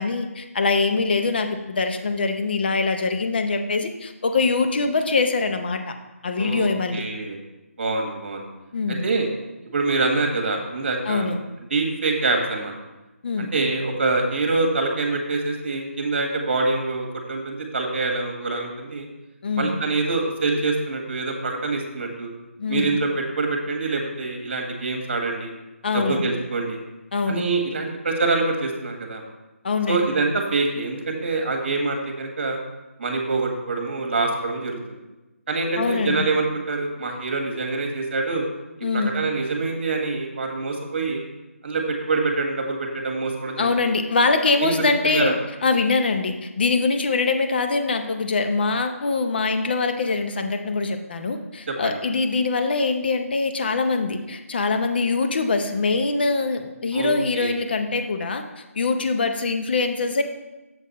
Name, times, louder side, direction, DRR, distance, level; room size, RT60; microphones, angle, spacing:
voice 1, 0.0-5.9 6.2-7.0 8.7-9.1 11.0-11.4 13.2-13.5 19.4-19.8 22.6-23.0 25.8-26.2 27.1-27.5 29.6-30.2 35.8-36.3 38.8-39.2 43.6-45.3 45.6-58.4 58.7-60.2, left 3 dB, 45° left, 6 dB, 0.8 m, -23 dB
voice 2, 6.4-7.4 7.8-8.5 9.0-9.3 9.7-11.3 11.7-12.7 13.4-19.1 19.6-22.3 22.7-25.5 25.9-26.8 27.3-29.2 29.9-32.6 33.0-35.0 35.5-38.4 38.9-41.2 41.6-43.7 44.6-45.3 51.7-51.9 56.9-57.5, right 3 dB, 45° right, 3 dB, 1.6 m, -25 dB
7.1 x 6.5 x 4.1 m, 1.1 s
figure-of-eight pair, 165°, 8 cm